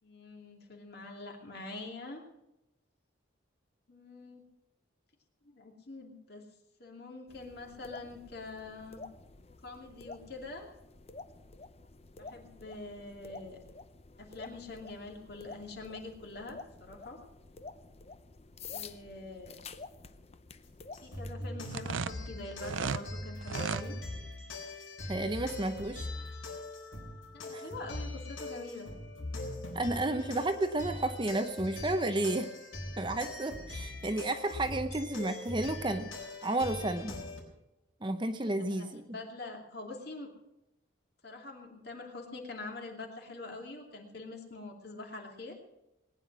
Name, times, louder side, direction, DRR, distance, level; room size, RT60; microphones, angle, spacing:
voice 1, 0.0-2.2 3.9-4.4 5.4-6.5 6.8-9.0 9.6-10.7 12.2-13.6 14.2-17.2 18.7-19.6 21.0-23.9 27.3-28.9 38.6-40.3 41.2-45.6, left 2 dB, 50° left, 1 dB, 2.6 m, -45 dB
sound 1, 7.3-21.3, left 4 dB, 30° left, 0.6 m, -50 dB
sound 2, 20.9-37.4, left 1 dB, 85° left, 4.0 m, -41 dB
sound 3, 21.6-23.0 23.4-23.9, right 5 dB, 75° right, 0.5 m, -34 dB
voice 2, 25.1-26.1 27.5-27.6 29.7-32.5 33.0-36.1 36.4-37.2 38.0-39.0, right 2 dB, 25° right, 8 dB, 0.7 m, -32 dB
19.5 x 9.9 x 6.1 m, 0.92 s
head